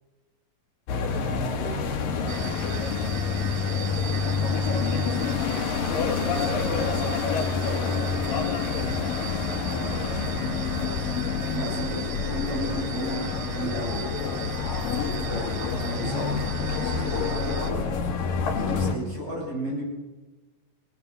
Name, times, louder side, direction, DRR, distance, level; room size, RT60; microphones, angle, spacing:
sound 1, 0.9-18.9, left 5 dB, 70° left, 3.6 m, -27 dB
voice 1, 0.9-8.1 8.4-9.0 9.7-11.5 15.0-15.3, left 1 dB, 35° left, -1 dB, 4.7 m, -44 dB
sound 2, 2.3-17.7, right 11 dB, 80° right, 2.6 m, -39 dB
voice 2, 11.5-14.1 14.7-17.8 18.5-19.8, equal, 30° right, -3 dB, 8.6 m, -34 dB
26.0 x 18.5 x 6.8 m, 1.2 s
omnidirectional pair, 4.1 m